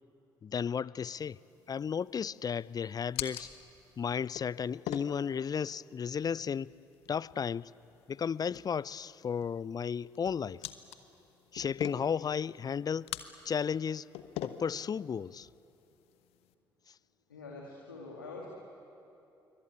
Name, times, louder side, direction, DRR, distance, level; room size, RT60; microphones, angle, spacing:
voice 1, 0.4-1.4 1.7-3.5 4.0-6.7 7.1-7.7 8.1-10.6 11.5-13.2 13.5-14.1 14.4-15.5, left 7 dB, 35° left, 22 dB, 0.5 m, -34 dB
sound 1, 1.2-16.5, left 12 dB, 65° left, 1.2 m, -46 dB
voice 2, 17.3-18.5, left 3 dB, 85° left, -2 dB, 2.2 m, -45 dB
27.0 x 23.5 x 8.7 m, 2.9 s
figure-of-eight pair, 45°, 11 cm